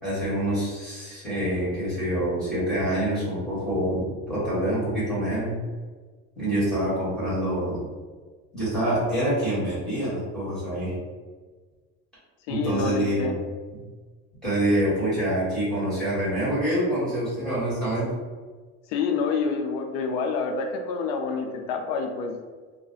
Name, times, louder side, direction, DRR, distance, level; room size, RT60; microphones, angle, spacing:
voice 1, 0.0-5.5 6.3-7.8 8.5-10.9 12.5-13.4 14.4-18.1, right 1 dB, ahead, -12 dB, 1.4 m, -26 dB
voice 2, 12.5-13.3 18.9-22.4, left 5 dB, 85° left, 4 dB, 0.5 m, -27 dB
2.4 x 2.2 x 3.7 m, 1.4 s
cardioid pair, 170°, 30 cm